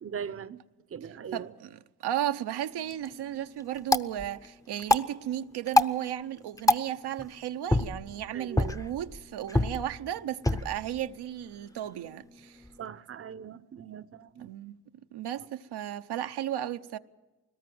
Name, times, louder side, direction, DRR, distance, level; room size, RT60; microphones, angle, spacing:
voice 1, 0.0-0.6 0.9-1.5 8.3-8.8 12.8-14.5, right 7 dB, 35° right, 0.8 m, -40 dB
voice 2, 1.3-12.6 14.4-14.8 15.1-17.0, right 11 dB, 70° right, 0.8 m, -34 dB
sound 1, 2.7-12.8, left 1 dB, 10° left, 0.8 m, -30 dB
21.5 x 19.0 x 7.7 m
cardioid pair, 80°, 40 cm